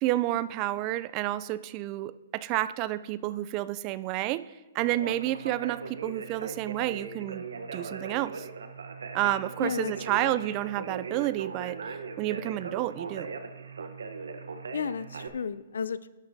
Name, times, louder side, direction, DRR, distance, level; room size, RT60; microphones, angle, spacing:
voice 1, 0.0-4.4 4.7-7.4 7.7-8.5 9.1-11.8 12.2-13.3, right 15 dB, 30° right, 16 dB, 0.3 m, -30 dB
Conversation, 4.8-15.3, right 4 dB, 85° right, 0.9 m, -39 dB
voice 2, 9.6-9.9 10.2-10.4 14.7-16.1, left 6 dB, 80° left, 16 dB, 0.4 m, -33 dB
12.0 x 11.5 x 2.7 m, 1.1 s
hypercardioid pair, 145°, 0 cm